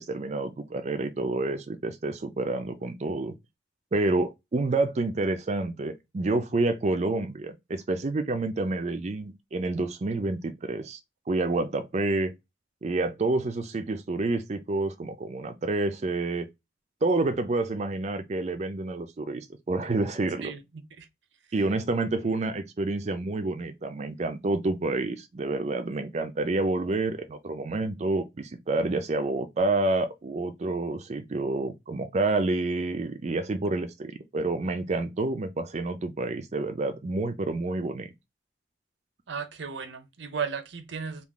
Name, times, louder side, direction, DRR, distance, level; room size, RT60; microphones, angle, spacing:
voice 1, 0.0-3.3 3.9-11.0 11.3-12.3 12.8-16.5 17.0-20.5 21.5-38.1, right 2 dB, 40° right, 0.4 m, -28 dB
voice 2, 39.3-41.2, right 6 dB, 85° right, 0.7 m, -34 dB
3.7 x 2.4 x 3.5 m
head